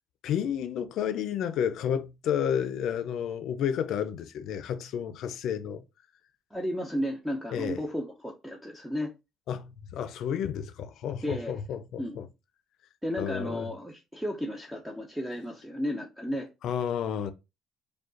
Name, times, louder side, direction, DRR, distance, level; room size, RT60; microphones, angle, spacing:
voice 1, 0.2-5.8 7.5-7.8 9.5-12.3 13.2-13.7 16.6-17.3, left 8 dB, 65° left, 0.5 m, -31 dB
voice 2, 6.5-9.1 11.2-11.5 12.0-12.2 13.0-16.5, equal, 5° right, 0.6 m, -33 dB
5.0 x 2.3 x 3.8 m
cardioid pair, 145°, 0 cm